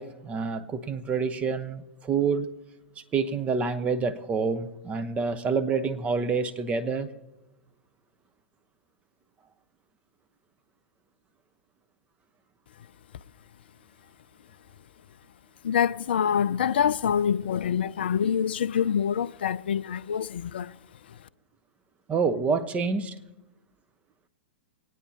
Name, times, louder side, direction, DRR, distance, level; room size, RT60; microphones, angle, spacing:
voice 1, 0.0-2.5 3.1-7.1 22.1-23.1, right 5 dB, 20° right, 0.8 m, -27 dB
voice 2, 15.6-20.7, left 8 dB, 65° left, 0.4 m, -26 dB
24.5 x 9.2 x 2.8 m
figure-of-eight pair, 100°, 6 cm